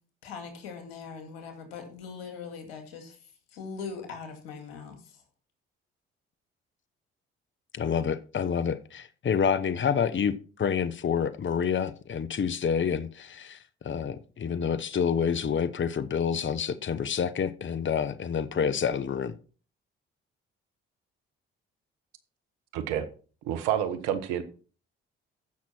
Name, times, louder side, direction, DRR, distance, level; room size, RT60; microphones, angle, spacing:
voice 1, 0.2-3.2 3.5-5.0, left 5 dB, 90° left, 2.3 m, -40 dB
voice 2, 7.7-19.3, left 7 dB, 40° left, 1.0 m, -28 dB
voice 3, 22.7-23.1 23.4-24.4, right 10 dB, 85° right, 1.2 m, -28 dB
14.5 x 6.1 x 4.4 m
hypercardioid pair, 50°, 30 cm